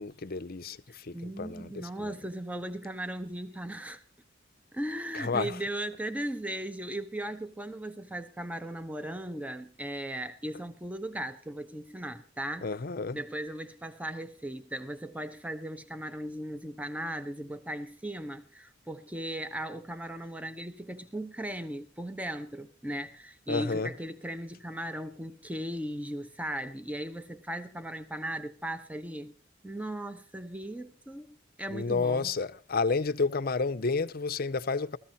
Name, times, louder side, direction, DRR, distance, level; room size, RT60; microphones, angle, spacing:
voice 1, 0.0-2.1 5.1-5.6 12.6-13.2 23.5-23.9 31.7-35.0, left 4 dB, 50° left, 0.7 m, -31 dB
voice 2, 1.1-4.0 4.7-12.7 13.1-29.3 29.6-32.3, right 1 dB, 10° right, 0.9 m, -37 dB
15.0 x 14.5 x 4.1 m
head